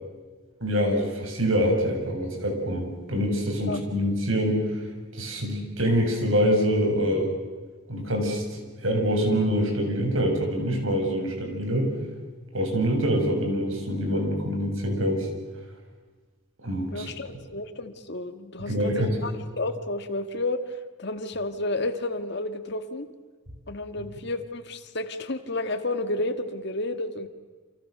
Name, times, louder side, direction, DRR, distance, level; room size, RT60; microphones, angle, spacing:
voice 1, 0.6-4.6 5.1-7.3 7.9-8.4 8.8-11.9 12.5-15.3 16.6-17.1 18.6-19.2 24.0-24.1, equal, 75° right, 3 dB, 7.1 m, -25 dB
voice 2, 16.9-23.1 23.7-27.3, left 2 dB, 55° left, 9 dB, 1.9 m, -31 dB
29.0 x 28.0 x 6.8 m, 1.4 s
head